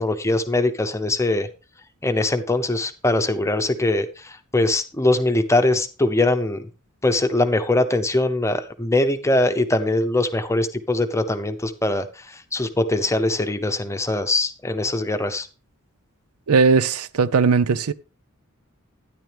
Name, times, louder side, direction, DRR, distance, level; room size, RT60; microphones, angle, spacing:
voice 1, 0.0-1.5 2.0-6.7 7.0-15.5, left 2 dB, 15° left, 0.8 m, -22 dB
voice 2, 16.5-17.9, right 5 dB, 80° right, 0.5 m, -18 dB
12.5 x 10.0 x 3.4 m
head